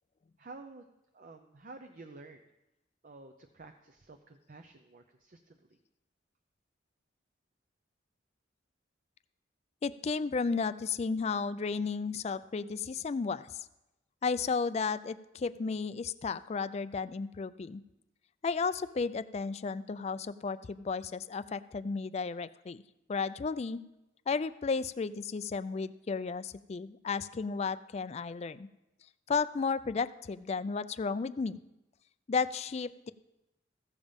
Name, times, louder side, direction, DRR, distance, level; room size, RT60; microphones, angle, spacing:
voice 1, 0.4-0.9 1.1-2.5 3.0-5.6, right 3 dB, 45° right, 7 dB, 0.6 m, -51 dB
voice 2, 9.8-13.7 14.2-17.8 18.4-22.8 23.1-23.8 24.3-28.7 29.3-31.6 32.3-33.1, left 5 dB, 35° left, 15 dB, 0.3 m, -33 dB
15.0 x 7.2 x 5.2 m, 0.93 s
head